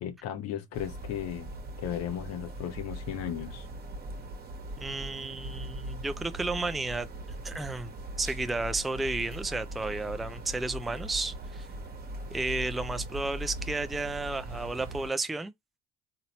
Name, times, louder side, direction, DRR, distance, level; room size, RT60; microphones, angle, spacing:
voice 1, 0.0-1.5 1.8-3.7, left 10 dB, 55° left, 1.0 m, -35 dB
sound 1, 0.7-15.1, right 1 dB, 30° right, 1.2 m, -40 dB
voice 2, 4.8-7.1 7.4-7.9 8.2-11.7 12.3-15.5, right 3 dB, ahead, 0.4 m, -32 dB
3.9 x 2.9 x 2.8 m
hypercardioid pair, 60°, 30 cm